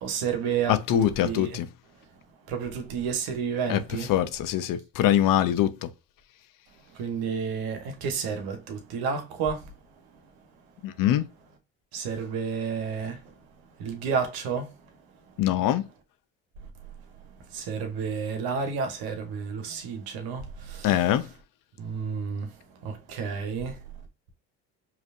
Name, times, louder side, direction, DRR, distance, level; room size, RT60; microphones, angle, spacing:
voice 1, 0.0-1.6 2.5-4.1 6.9-9.7 11.9-13.3 13.8-14.8 17.5-21.3 21.8-22.5 22.8-23.8, right 6 dB, 65° right, 1.3 m, -31 dB
voice 2, 0.7-1.7 3.7-5.9 10.8-11.3 15.4-15.9 20.8-21.3, left 12 dB, 55° left, 0.7 m, -23 dB
5.0 x 3.2 x 2.6 m
hypercardioid pair, 70°, 39 cm